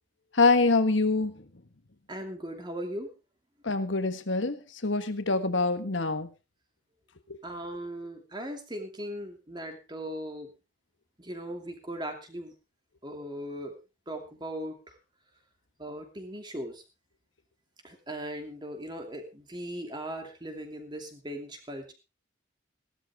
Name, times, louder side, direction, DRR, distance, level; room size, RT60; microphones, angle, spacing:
voice 1, 0.4-1.3 3.6-4.6 4.8-6.3, left 3 dB, 75° left, 10 dB, 1.5 m, -25 dB
voice 2, 2.1-3.1 7.4-10.5 11.2-12.5 13.0-13.8 14.1-15.0 15.8-16.8 17.8-21.9, equal, 25° right, 4 dB, 2.8 m, -38 dB
17.0 x 12.5 x 3.6 m, 0.29 s
head